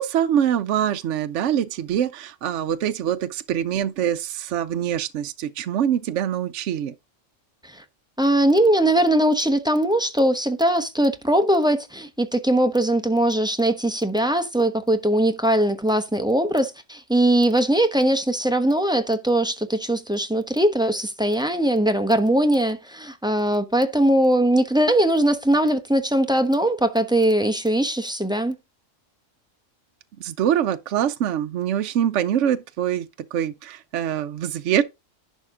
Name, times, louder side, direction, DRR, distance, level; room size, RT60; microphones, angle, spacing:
voice 1, 0.0-6.9 30.2-34.8, right 10 dB, 70° right, 0.9 m, -24 dB
voice 2, 8.2-28.5, right 1 dB, 5° right, 0.9 m, -20 dB
11.0 x 6.2 x 3.7 m
omnidirectional pair, 1.3 m